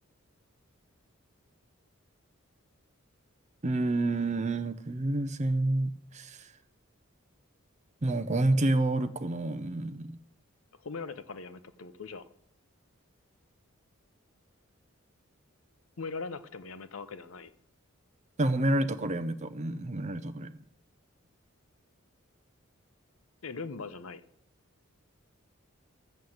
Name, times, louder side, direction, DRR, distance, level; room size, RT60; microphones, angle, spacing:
voice 1, 3.6-6.5 8.0-10.1 18.4-20.6, right 2 dB, 35° right, 11 dB, 0.7 m, -29 dB
voice 2, 10.8-12.3 16.0-17.5 23.4-24.2, left 4 dB, 75° left, 12 dB, 0.8 m, -40 dB
13.0 x 7.2 x 7.9 m, 0.74 s
head